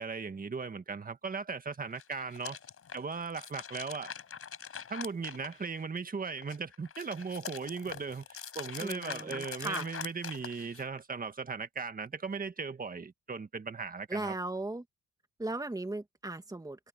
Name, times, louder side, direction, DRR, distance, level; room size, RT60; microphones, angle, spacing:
voice 1, 0.0-2.6 2.9-4.1 4.9-14.3, right 5 dB, 30° right, 1.7 m, -38 dB
sound 1, 1.9-6.0 6.4-11.0, left 7 dB, 50° left, 6.5 m, -44 dB
voice 2, 8.8-9.9 14.1-14.8 15.4-16.9, right 2 dB, 10° right, 2.5 m, -37 dB
cardioid pair, 90°, 30 cm